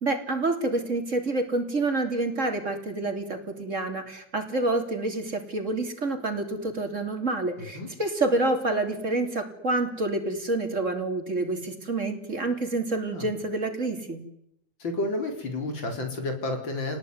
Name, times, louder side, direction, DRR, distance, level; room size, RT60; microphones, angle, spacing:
voice 1, 0.0-14.2, right 2 dB, 40° right, 6 dB, 3.4 m, -28 dB
voice 2, 7.6-7.9 13.1-13.3 14.8-17.0, left 2 dB, 75° left, 4 dB, 4.9 m, -31 dB
29.0 x 19.5 x 9.5 m, 0.80 s
omnidirectional pair, 2.1 m